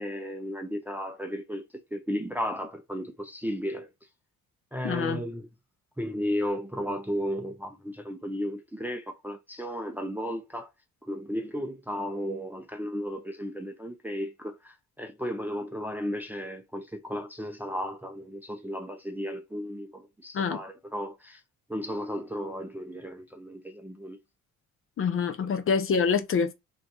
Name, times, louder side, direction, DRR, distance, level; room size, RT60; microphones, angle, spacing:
voice 1, 0.0-1.6 1.9-3.9 4.7-5.5 6.0-10.7 11.1-21.4 21.7-24.2, equal, 5° right, 0.5 m, -34 dB
voice 2, 4.8-5.2 20.3-20.6 25.0-26.5, left 6 dB, 40° left, 0.6 m, -26 dB
2.5 x 2.3 x 3.9 m
cardioid pair, 80°, 32 cm